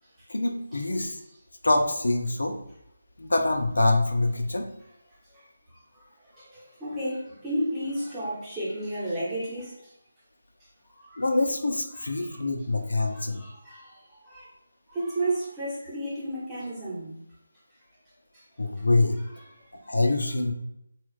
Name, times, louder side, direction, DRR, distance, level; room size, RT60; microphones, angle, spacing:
voice 1, 0.3-1.2 1.6-2.6 3.2-4.7 11.2-13.4 18.6-19.1 19.9-20.5, left 2 dB, 80° left, 0.6 m, -25 dB
voice 2, 6.3-9.7 11.0-11.2 11.9-12.4 13.0-14.5 14.9-17.2 18.3-18.4 19.4-19.9, right 1 dB, 10° right, 0.9 m, -33 dB
3.1 x 2.4 x 3.1 m
figure-of-eight pair, 165°, 0 cm